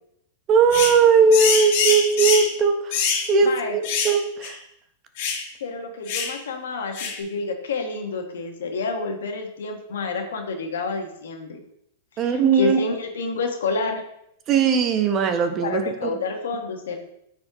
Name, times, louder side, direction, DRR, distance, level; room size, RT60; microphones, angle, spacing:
voice 1, 0.5-3.0 3.3-4.6 12.2-12.8 14.5-16.1, right 5 dB, 30° right, 7 dB, 0.8 m, -19 dB
sound 1, 0.7-1.0 1.3-2.5 2.9-3.3 3.8-4.2 4.4-4.5 5.2-5.4 6.1-6.3 6.9-7.2, left 6 dB, 60° left, 1.5 m, -24 dB
voice 2, 3.4-3.8 5.6-11.6 12.2-14.0 15.6-17.0, left 3 dB, 90° left, 3 dB, 1.4 m, -29 dB
9.3 x 4.3 x 3.0 m, 0.76 s
hypercardioid pair, 140°, 0 cm